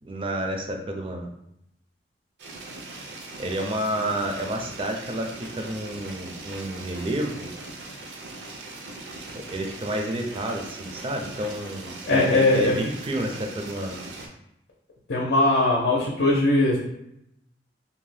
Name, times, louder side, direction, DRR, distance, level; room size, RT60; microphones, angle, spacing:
voice 1, 0.0-1.3 3.4-7.5 9.3-14.0, right 1 dB, 30° right, 3 dB, 0.4 m, -30 dB
sound 1, 2.4-14.3, right 2 dB, 80° right, 0.5 m, -40 dB
voice 2, 12.1-12.8 15.1-16.8, left 2 dB, 75° left, -3 dB, 0.6 m, -20 dB
2.7 x 2.1 x 3.2 m, 0.80 s
head